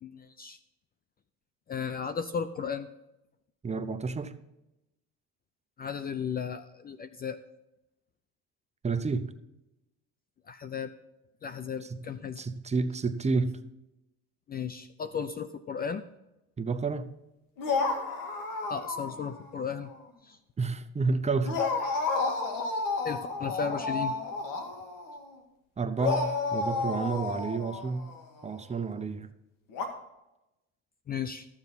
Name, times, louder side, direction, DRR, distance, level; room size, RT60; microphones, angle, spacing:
voice 1, 0.0-0.6 1.7-2.9 5.8-7.4 10.5-10.9 11.4-12.4 14.5-16.0 18.7-19.9 20.2-20.4 23.0-24.2 31.1-31.5, left 6 dB, 25° left, 0.5 m, -35 dB
voice 2, 3.6-4.3 8.8-9.3 11.8-12.0 12.4-13.6 16.6-17.1 20.6-22.1 25.8-28.1 28.4-29.3, right 4 dB, 20° right, 0.7 m, -30 dB
sound 1, 17.6-19.5 19.8-19.9 21.4-25.3 26.0-28.4 29.7-29.9, left 3 dB, 65° left, 2.0 m, -31 dB
13.0 x 7.3 x 4.1 m
supercardioid pair, 100°, 36 cm